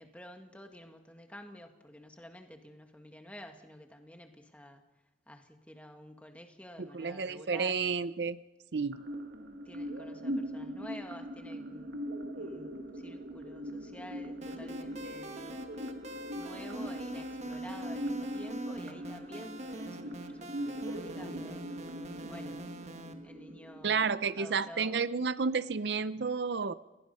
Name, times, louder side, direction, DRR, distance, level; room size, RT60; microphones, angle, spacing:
voice 1, 0.0-4.8 5.3-7.8 9.6-12.0 12.3-15.7 16.3-22.7 23.2-25.0, left 1 dB, 5° left, 4 dB, 1.8 m, -50 dB
voice 2, 6.8-8.4 8.7-9.0 23.8-26.7, right 5 dB, 65° right, 14 dB, 0.6 m, -31 dB
sound 1, 8.9-24.9, equal, 80° right, 2.3 m, -41 dB
sound 2, 14.4-23.1, right 1 dB, 40° right, 1.6 m, -43 dB
30.0 x 17.5 x 5.5 m, 1.1 s
head